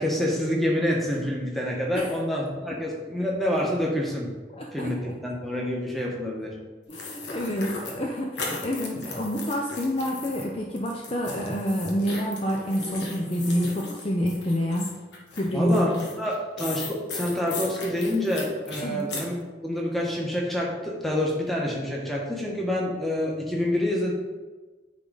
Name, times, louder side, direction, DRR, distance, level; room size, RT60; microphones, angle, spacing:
voice 1, 0.0-4.3 4.7-6.5 15.5-19.3 19.6-24.1, left 1 dB, ahead, -3 dB, 1.2 m, -27 dB
voice 2, 4.5-5.1 6.9-15.0 15.3-16.1 18.8-19.0, equal, 30° left, 0 dB, 0.5 m, -28 dB
sound 1, 6.9-10.4 10.8-19.3, left 3 dB, 75° left, 1.4 m, -37 dB
9.6 x 3.8 x 3.9 m, 1.3 s
head